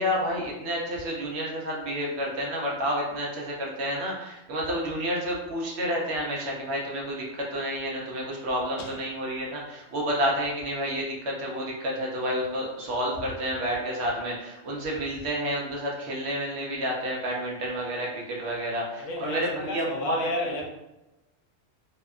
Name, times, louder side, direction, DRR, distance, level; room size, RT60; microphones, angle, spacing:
voice 1, 0.0-20.2, equal, 65° right, -2 dB, 0.8 m, -30 dB
voice 2, 19.0-20.6, left 1 dB, 80° left, 0 dB, 0.9 m, -32 dB
2.7 x 2.1 x 2.3 m, 0.97 s
omnidirectional pair, 1.3 m